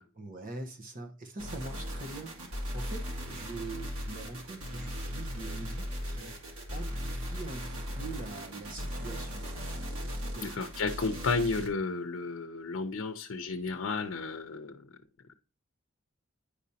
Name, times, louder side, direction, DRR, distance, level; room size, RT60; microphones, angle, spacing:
voice 1, 0.2-6.4 6.7-9.4 10.3-10.5, right 2 dB, 40° right, 1.0 m, -43 dB
sound 1, 1.4-11.7, equal, 90° right, 2.1 m, -38 dB
voice 2, 10.4-14.8, left 4 dB, 70° left, 0.6 m, -32 dB
9.8 x 5.0 x 2.8 m
head